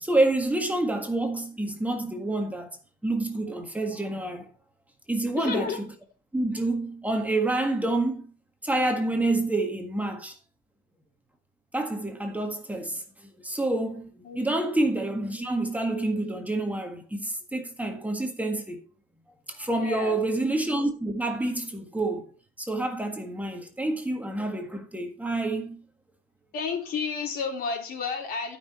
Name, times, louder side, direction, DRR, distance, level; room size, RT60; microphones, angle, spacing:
voice 1, 0.0-2.7 3.0-4.5 5.1-5.9 6.3-8.3 8.6-10.4 11.7-18.8 19.5-22.3 22.6-25.8, right 2 dB, 10° right, 1.7 m, -28 dB
voice 2, 5.4-5.8 14.2-14.4 19.7-20.2 26.5-28.6, left 5 dB, 65° left, 3.8 m, -31 dB
12.5 x 6.1 x 4.4 m
cardioid pair, 110°, 17 cm